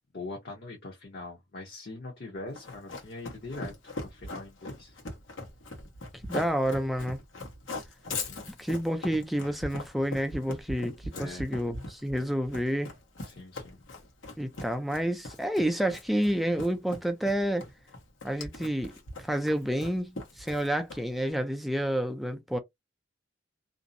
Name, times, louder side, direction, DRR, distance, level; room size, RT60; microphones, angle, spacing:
voice 1, 0.1-5.0 8.2-8.5 11.1-11.5 13.2-13.8, left 2 dB, 55° left, 0.8 m, -42 dB
Run, 2.5-21.2, left 2 dB, 90° left, 1.0 m, -40 dB
voice 2, 6.3-7.2 8.6-12.9 14.4-17.6 18.2-18.9 19.2-22.6, equal, ahead, 0.4 m, -29 dB
2.6 x 2.0 x 2.5 m
head